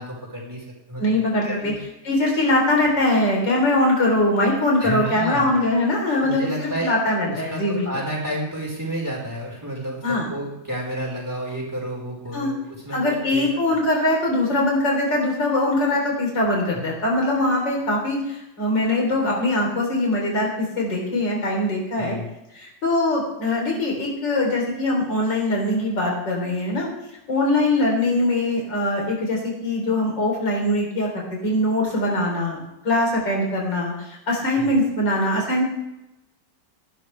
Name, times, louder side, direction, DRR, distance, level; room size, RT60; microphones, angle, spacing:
voice 1, 0.0-1.1 1.4-1.8 4.8-5.5 6.2-13.8 16.7-16.8 21.9-22.3 34.5-34.7, right 1 dB, 10° right, -2 dB, 4.6 m, -31 dB
voice 2, 1.0-1.7 2.0-7.9 10.0-10.3 12.3-12.5 12.9-22.2 22.6-26.9 27.3-35.6, left 1 dB, 85° left, -1 dB, 4.4 m, -22 dB
19.5 x 12.0 x 3.4 m, 0.91 s
omnidirectional pair, 1.9 m